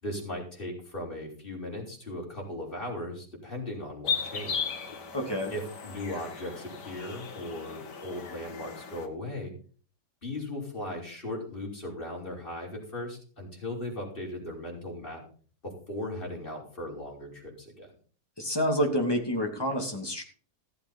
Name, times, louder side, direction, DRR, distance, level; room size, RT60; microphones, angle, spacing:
voice 1, 0.0-4.7 5.5-9.5 10.2-15.2 15.6-17.9, left 1 dB, 30° left, -3 dB, 5.6 m, -38 dB
sound 1, 4.0-9.1, left 6 dB, 85° left, 2.2 m, -36 dB
voice 2, 5.1-5.5 18.4-20.2, equal, 15° left, 2 dB, 2.7 m, -28 dB
16.0 x 7.8 x 5.5 m, 0.41 s
omnidirectional pair, 1.8 m